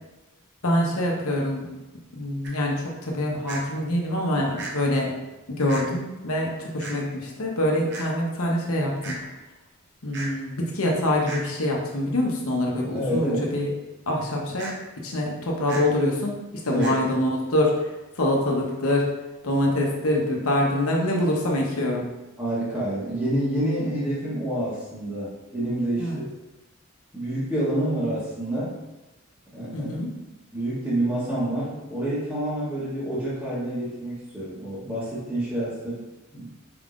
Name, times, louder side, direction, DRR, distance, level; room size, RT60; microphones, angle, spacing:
voice 1, 0.6-1.7 2.1-5.1 5.5-9.2 10.0-13.7 14.1-14.7 15.0-16.4 16.6-19.0 19.4-22.0 26.0-26.2 29.7-30.1, left 1 dB, 80° left, -1 dB, 0.9 m, -25 dB
sound 1, 2.4-2.5 3.5-3.6 4.6-4.7 5.7-5.8 6.8-6.9 7.9-8.1 9.0-9.2 10.1-10.3 11.2-11.4 14.6-14.7 15.7-15.8 16.8-17.0, right 2 dB, 50° right, 0.7 m, -35 dB
voice 2, 12.9-13.5 16.7-16.9 22.4-26.3 27.1-28.8 29.5-30.0 30.5-36.0 36.3-36.5, right 1 dB, 10° right, -10 dB, 1.1 m, -28 dB
4.8 x 3.6 x 2.5 m, 1.0 s
head